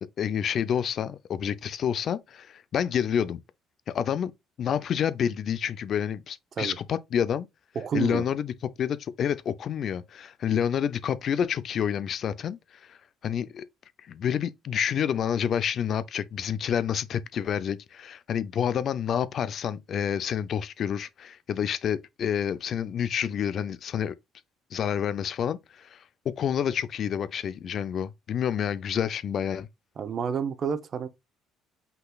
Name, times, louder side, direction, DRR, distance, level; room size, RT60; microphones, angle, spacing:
voice 1, 0.2-3.4 3.9-4.3 4.6-7.5 7.9-13.0 13.2-13.6 14.1-24.2 24.7-26.0 26.4-29.7, left 8 dB, 50° left, 0.4 m, -28 dB
voice 2, 7.7-8.3 30.0-31.1, right 6 dB, 40° right, 0.7 m, -29 dB
5.5 x 3.9 x 2.2 m
cardioid pair, 130°, 0 cm